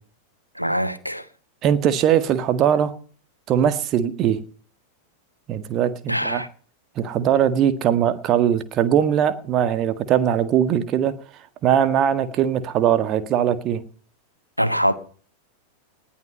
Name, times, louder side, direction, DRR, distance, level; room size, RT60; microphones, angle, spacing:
voice 1, 0.5-1.3 6.1-6.5 14.6-14.9, equal, 90° left, 1.3 m, -23 dB
voice 2, 1.6-2.9 3.5-4.4 5.5-6.4 7.0-11.1 11.6-13.8, right 9 dB, 35° right, 1.7 m, -20 dB
19.5 x 11.0 x 5.5 m
figure-of-eight pair, 90°, 0 cm